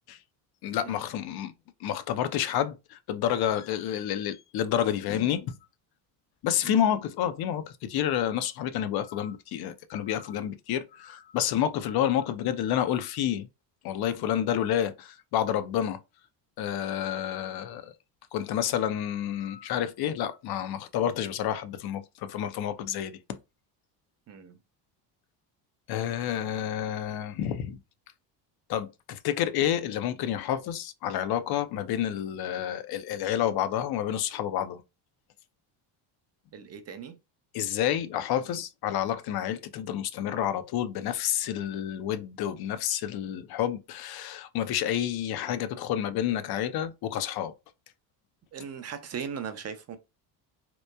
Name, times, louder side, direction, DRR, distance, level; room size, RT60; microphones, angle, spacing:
voice 1, 0.6-1.5 1.8-5.5 6.4-13.5 13.8-16.0 16.6-17.9 18.3-23.4 25.9-27.8 28.7-34.8 37.5-47.5, left 10 dB, 50° left, 0.5 m, -29 dB
voice 2, 36.5-37.2 48.5-50.0, right 7 dB, 30° right, 0.5 m, -38 dB
2.9 x 2.1 x 2.2 m
supercardioid pair, 80°, 50 cm